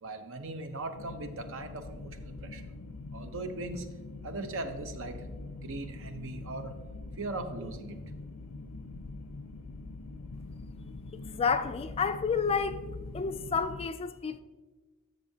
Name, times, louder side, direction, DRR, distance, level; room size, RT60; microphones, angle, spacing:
voice 1, 0.0-2.6 3.1-3.8 4.2-5.2 5.6-6.7 7.2-8.0, right 2 dB, 65° right, 0.8 m, -39 dB
sound 1, 0.9-13.9, left 3 dB, 85° left, 0.5 m, -44 dB
voice 2, 11.3-12.8 13.1-14.4, left 5 dB, 25° left, 0.3 m, -30 dB
12.0 x 6.7 x 2.8 m
head